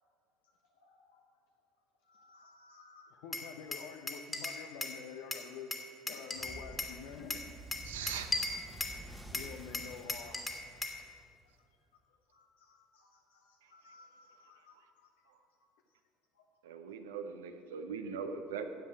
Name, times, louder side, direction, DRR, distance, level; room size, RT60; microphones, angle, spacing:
voice 1, 0.8-1.2 2.1-3.2 8.0-8.4 9.0-9.3 12.3-15.1 16.3-16.4, left 3 dB, 85° left, -1 dB, 2.1 m, -62 dB
voice 2, 3.1-5.7 6.1-7.5 9.3-10.5, left 7 dB, 65° left, 4 dB, 0.8 m, -47 dB
Glass, 3.3-5.0 5.3-7.0 7.3-9.0 9.3-11.0, left 2 dB, 20° left, 2.0 m, -38 dB
sound 1, 6.3-11.5, right 1 dB, ahead, 1.3 m, -50 dB
voice 3, 7.8-8.3 13.6-13.7 16.6-18.7, right 6 dB, 80° right, 7 dB, 0.9 m, -40 dB
10.5 x 7.5 x 8.9 m, 2.4 s
hypercardioid pair, 70°, 0 cm